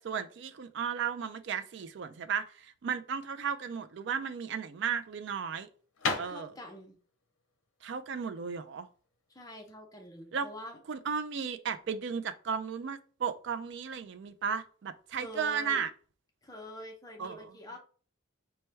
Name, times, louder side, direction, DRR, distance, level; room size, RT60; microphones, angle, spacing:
voice 1, 0.0-5.7 6.2-6.5 7.8-8.9 10.3-10.5 10.9-15.9 17.2-17.5, right 6 dB, 55° right, 0.3 m, -35 dB
sound 1, 4.1-9.8, left 4 dB, 75° left, 0.6 m, -38 dB
voice 2, 6.3-6.9 9.3-10.8 15.2-15.8 16.4-17.8, left 1 dB, 15° left, 0.6 m, -45 dB
4.3 x 2.2 x 3.3 m
head